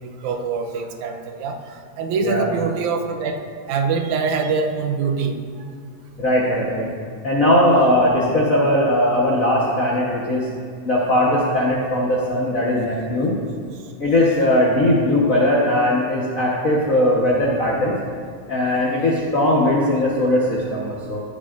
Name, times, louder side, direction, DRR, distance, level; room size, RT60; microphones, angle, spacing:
voice 1, 0.0-3.4 3.7-5.4, right 5 dB, 80° right, 3 dB, 2.2 m, -24 dB
voice 2, 6.2-6.9 7.2-10.5 10.8-13.3 14.0-17.9 18.5-21.2, left 1 dB, 55° left, -4 dB, 0.9 m, -19 dB
19.0 x 9.0 x 2.6 m, 2.1 s
omnidirectional pair, 3.4 m